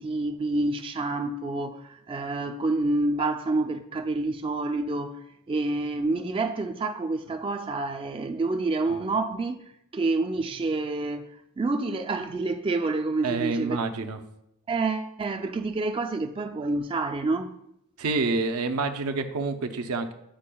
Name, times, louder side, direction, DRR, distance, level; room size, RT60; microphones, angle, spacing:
voice 1, 0.0-9.6 9.9-11.3 11.6-13.8 14.7-17.5, right 3 dB, 25° right, 0.3 m, -28 dB
voice 2, 13.2-14.2 18.0-20.1, right 3 dB, 85° right, 0.6 m, -28 dB
10.0 x 4.9 x 2.2 m
head